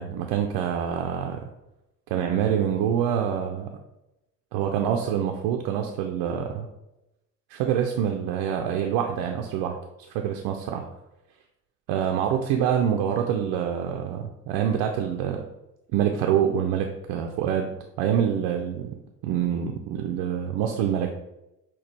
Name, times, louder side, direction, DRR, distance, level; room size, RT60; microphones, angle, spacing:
voice 1, 0.0-1.4 2.1-3.7 4.5-6.7 7.5-9.8 10.1-10.9 11.9-15.4 15.9-17.7 18.0-18.9 19.2-21.1, right 9 dB, 50° right, 3 dB, 0.5 m, -26 dB
5.8 x 2.3 x 3.0 m, 0.92 s
figure-of-eight pair, 50°, 48 cm